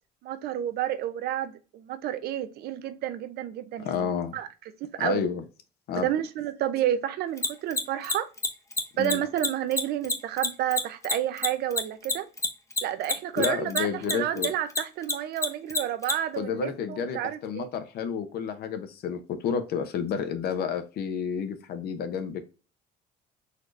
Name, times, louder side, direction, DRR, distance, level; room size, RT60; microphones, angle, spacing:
voice 1, 0.2-4.5 4.8-5.3 6.0-8.3 9.0-12.3 12.8-17.7, right 11 dB, 70° right, 0.6 m, -30 dB
voice 2, 3.8-4.4 5.0-5.4 5.9-6.1 9.0-9.2 13.4-14.5 16.4-22.4, left 7 dB, 70° left, 0.7 m, -30 dB
Mechanisms, 7.4-14.1 14.4-16.1, left 3 dB, 20° left, 0.7 m, -26 dB
4.1 x 3.2 x 2.5 m
cardioid pair, 110°, 17 cm